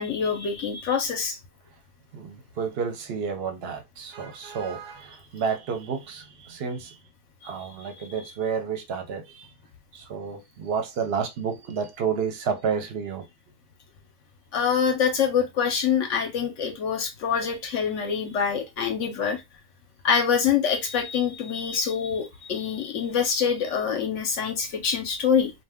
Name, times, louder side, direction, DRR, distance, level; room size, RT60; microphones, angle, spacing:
voice 1, 0.0-1.4 7.4-7.5 14.5-19.4 20.0-25.5, left 7 dB, 65° left, 0.8 m, -25 dB
voice 2, 2.1-7.0 7.4-9.5 9.9-13.2, right 6 dB, 55° right, 0.7 m, -30 dB
2.5 x 2.2 x 3.5 m
omnidirectional pair, 1.6 m